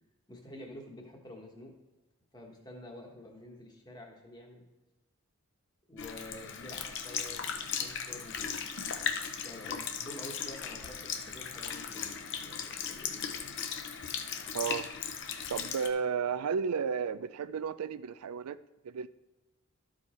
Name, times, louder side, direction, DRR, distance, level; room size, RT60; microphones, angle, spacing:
voice 1, 0.3-1.7 2.3-4.6 5.9-8.6 9.4-13.4, left 1 dB, 20° left, 1 dB, 1.2 m, -49 dB
Sink (filling or washing) / Liquid, 6.0-15.9, left 7 dB, 55° left, 0.7 m, -37 dB
voice 2, 14.5-14.9 15.5-18.6 18.8-19.1, right 6 dB, 90° right, 15 dB, 0.4 m, -33 dB
12.5 x 5.0 x 4.3 m, 1.1 s
head